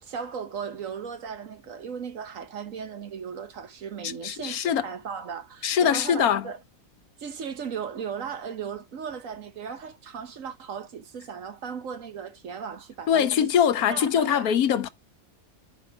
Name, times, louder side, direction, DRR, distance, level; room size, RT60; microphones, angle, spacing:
voice 1, 0.0-6.6 7.2-13.5 13.8-14.5, right 7 dB, 65° right, 1.4 m, -37 dB
voice 2, 4.0-4.8 5.6-6.5 13.1-14.9, left 8 dB, 90° left, 1.3 m, -23 dB
10.0 x 5.0 x 6.0 m
omnidirectional pair, 1.5 m